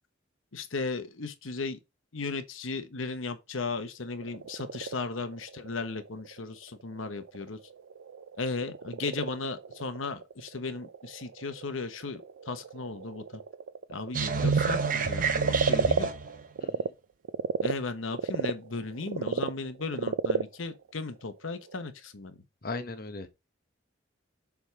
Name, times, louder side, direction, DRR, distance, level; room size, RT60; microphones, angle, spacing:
voice 1, 0.5-1.8 2.1-7.6 8.4-12.2 12.5-13.4 13.9-16.1 17.6-22.4, left 3 dB, 85° left, 1.0 m, -36 dB
Frog, 4.0-16.9 17.2-21.9, right 5 dB, 85° right, 0.4 m, -33 dB
sound 1, 14.1-16.4, right 5 dB, 40° right, 0.8 m, -29 dB
voice 2, 16.6-16.9 22.6-23.3, left 3 dB, 45° left, 0.9 m, -37 dB
7.0 x 3.5 x 4.7 m
head